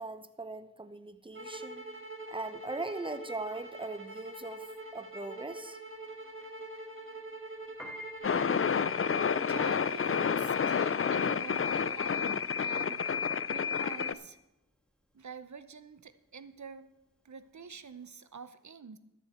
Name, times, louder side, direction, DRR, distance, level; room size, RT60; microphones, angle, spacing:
voice 1, 0.0-1.8 2.3-4.7 4.9-5.8, right 2 dB, 15° right, 11 dB, 0.8 m, -40 dB
sound 1, 1.3-9.7, right 2 dB, 40° right, 1.6 m, -44 dB
Piano, 7.6-18.0, left 1 dB, 5° left, 1.7 m, -53 dB
sound 2, 8.2-14.1, left 6 dB, 40° left, 0.5 m, -29 dB
voice 2, 9.4-14.4 15.1-16.9 17.2-19.0, right 6 dB, 55° right, 13 dB, 0.8 m, -47 dB
14.0 x 10.5 x 4.4 m, 0.91 s
wide cardioid pair, 55°, 34 cm